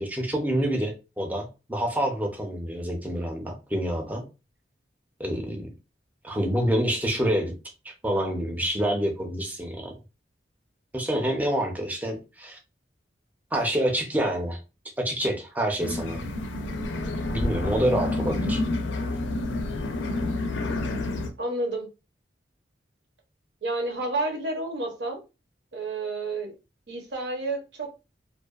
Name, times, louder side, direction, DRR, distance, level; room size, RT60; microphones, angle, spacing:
voice 1, 0.0-4.2 5.2-5.7 6.2-7.5 7.8-9.9 10.9-12.6 13.5-14.6 15.0-16.2 17.3-18.6, equal, 10° right, 0.5 m, -27 dB
sound 1, 15.8-21.3, left 2 dB, 85° left, 0.4 m, -29 dB
voice 2, 21.4-21.9 23.6-25.2 25.7-26.5 26.9-27.9, right 2 dB, 75° right, 0.8 m, -30 dB
2.6 x 2.1 x 2.3 m
head